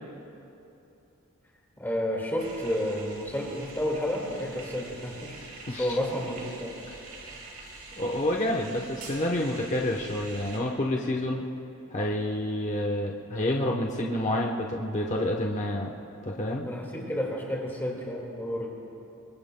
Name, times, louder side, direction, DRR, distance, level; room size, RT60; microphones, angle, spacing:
voice 1, 1.8-5.4 5.7-6.7 16.6-18.7, equal, 10° left, -2 dB, 2.0 m, -31 dB
sound 1, 2.4-10.6, right 3 dB, 75° right, 4.4 m, -45 dB
voice 2, 8.0-11.5 11.9-15.9 16.2-16.7, left 1 dB, 35° left, 0 dB, 0.9 m, -28 dB
27.0 x 24.0 x 2.2 m, 2.8 s
head